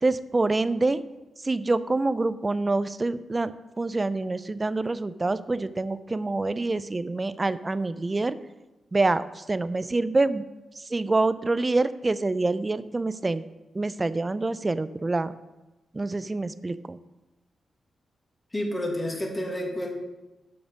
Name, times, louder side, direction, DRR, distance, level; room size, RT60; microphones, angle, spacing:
voice 1, 0.0-1.0 1.4-8.4 8.9-10.4 10.8-13.4 13.7-15.3 15.9-17.0, right 2 dB, 25° right, 15 dB, 0.4 m, -26 dB
voice 2, 18.5-19.9, left 1 dB, 20° left, 1 dB, 1.6 m, -29 dB
7.1 x 5.9 x 5.2 m, 1.1 s
cardioid pair, 75°, 0 cm